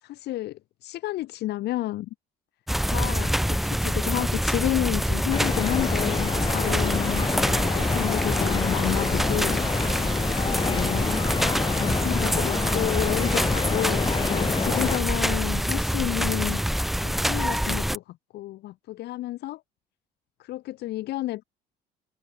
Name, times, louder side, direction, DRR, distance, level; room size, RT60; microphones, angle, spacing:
voice 1, 0.0-2.1 2.8-7.3 7.6-9.7 10.3-11.1 11.8-16.6 17.0-19.6 20.4-21.4, left 16 dB, 75° left, 4.3 m, -31 dB
sound 1, 2.7-18.0, equal, ahead, 2.6 m, -26 dB
sound 2, 5.3-15.0, left 5 dB, 30° left, 1.3 m, -28 dB
open air
cardioid pair, 110°, 17 cm